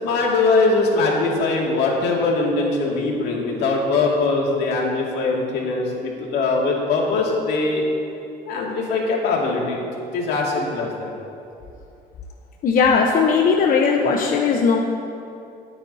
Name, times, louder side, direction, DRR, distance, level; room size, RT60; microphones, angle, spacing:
voice 1, 0.0-7.8 8.5-9.8 10.1-11.1, left 3 dB, 80° left, -2 dB, 2.4 m, -21 dB
voice 2, 12.6-14.8, left 5 dB, 55° left, 1 dB, 1.0 m, -18 dB
23.0 x 8.7 x 2.8 m, 2.7 s
cardioid pair, 110°, 17 cm